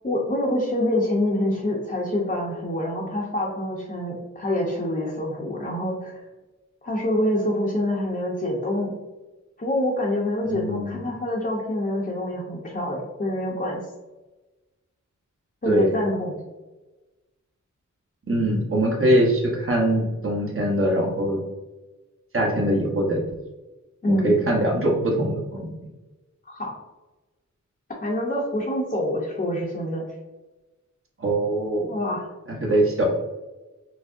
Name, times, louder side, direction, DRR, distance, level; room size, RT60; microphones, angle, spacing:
voice 1, 0.0-6.2 6.8-9.0 9.6-13.8 15.6-16.4 24.0-24.3 26.5-26.7 28.0-30.1 31.9-32.3, left 1 dB, 30° left, -4 dB, 0.7 m, -26 dB
voice 2, 10.5-11.0 15.7-15.9 18.3-21.4 22.3-23.4 24.1-25.7 31.2-31.9 32.5-33.1, right 1 dB, 45° right, -1 dB, 1.0 m, -22 dB
5.9 x 2.0 x 2.5 m, 1.1 s
wide cardioid pair, 90°, 31 cm